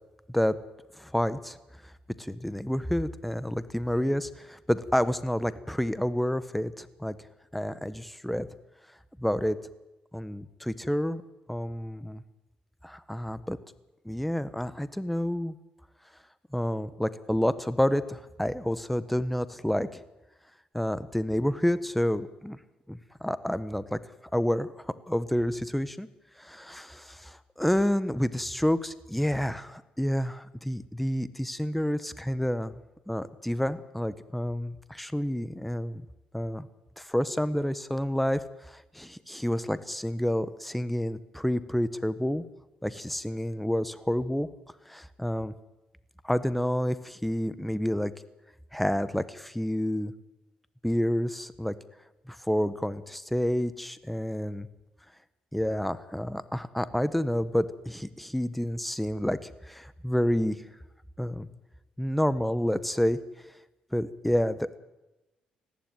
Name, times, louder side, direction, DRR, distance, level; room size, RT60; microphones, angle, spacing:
voice 1, 1.0-1.6 2.2-7.2 7.5-8.5 9.2-9.6 10.1-11.2 11.5-12.2 12.8-13.6 14.0-15.5 16.5-20.0 20.7-22.6 22.9-24.0 24.3-26.1 26.4-32.8 33.1-36.0 36.3-36.7 37.0-42.4 42.8-44.5 44.9-45.5 46.2-48.1 48.7-50.1 50.8-51.7 52.3-54.7 55.5-60.6 61.2-61.5 62.0-63.2 63.9-64.8, equal, 5° left, 14 dB, 1.3 m, -29 dB
19.5 x 14.5 x 9.3 m, 1.0 s
cardioid pair, 85°, 3 cm